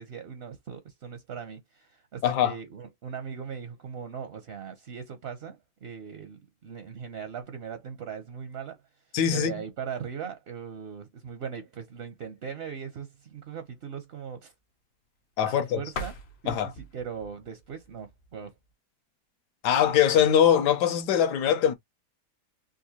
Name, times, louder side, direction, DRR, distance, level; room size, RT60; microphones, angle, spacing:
voice 1, 0.0-8.8 9.3-14.5 15.4-16.2 16.4-18.5, right 7 dB, 60° right, 0.6 m, -39 dB
voice 2, 2.2-2.5 9.1-9.5 15.4-15.8 16.5-16.7 19.6-21.7, left 9 dB, 75° left, 1.3 m, -22 dB
sound 1, 15.8-18.7, left 2 dB, 55° left, 0.8 m, -42 dB
3.9 x 2.5 x 2.8 m
omnidirectional pair, 1.8 m